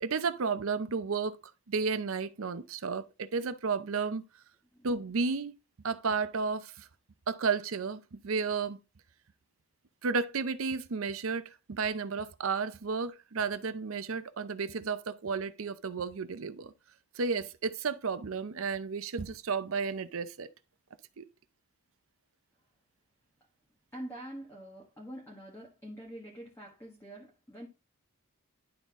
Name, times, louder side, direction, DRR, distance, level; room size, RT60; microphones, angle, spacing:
voice 1, 0.0-1.4 1.7-4.2 4.8-5.5 5.8-6.9 7.3-8.8 10.0-16.7 17.1-20.5 21.2-21.3, right 5 dB, 65° right, 0.6 m, -32 dB
voice 2, 23.9-27.7, right 1 dB, 10° left, 1.4 m, -45 dB
11.0 x 4.0 x 3.6 m
head